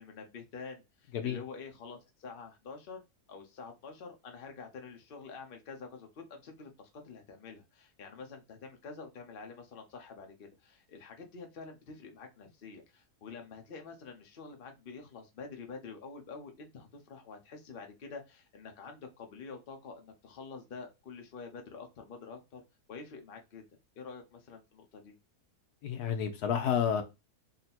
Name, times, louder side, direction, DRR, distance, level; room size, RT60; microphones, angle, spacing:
voice 1, 0.0-3.0 3.3-22.6 22.9-23.7 24.0-25.1, left 4 dB, 45° left, 0.9 m, -47 dB
voice 2, 25.8-27.0, left 8 dB, 75° left, 1.2 m, -30 dB
3.9 x 2.2 x 4.2 m
omnidirectional pair, 1.7 m